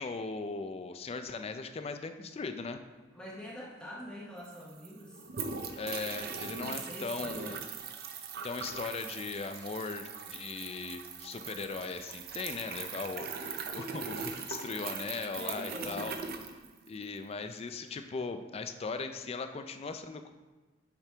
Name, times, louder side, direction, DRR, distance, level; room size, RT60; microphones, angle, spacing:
voice 1, 0.0-2.8 5.8-7.6 8.4-13.3 13.7-16.1 16.9-20.3, left 4 dB, 35° left, 8 dB, 0.4 m, -38 dB
voice 2, 3.1-5.2 6.6-7.4 13.9-14.1 15.4-16.1, equal, 5° left, -5 dB, 0.8 m, -45 dB
sound 1, 4.1-4.2 4.4-17.2, right 5 dB, 55° right, 0.5 m, -41 dB
7.2 x 5.1 x 3.4 m, 1.2 s
head